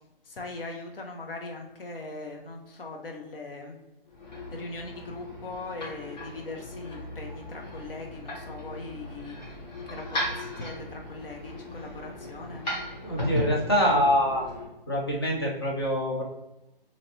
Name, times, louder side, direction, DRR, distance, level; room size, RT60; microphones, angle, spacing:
voice 1, 0.2-3.8 4.5-12.6, left 2 dB, 70° left, 2 dB, 0.8 m, -40 dB
sound 1, 4.1-14.6, left 1 dB, 45° left, 1.3 m, -37 dB
voice 2, 13.0-14.5 14.9-16.2, equal, 25° left, -1 dB, 0.4 m, -25 dB
2.9 x 2.6 x 2.9 m, 0.95 s
hypercardioid pair, 165°, 30 cm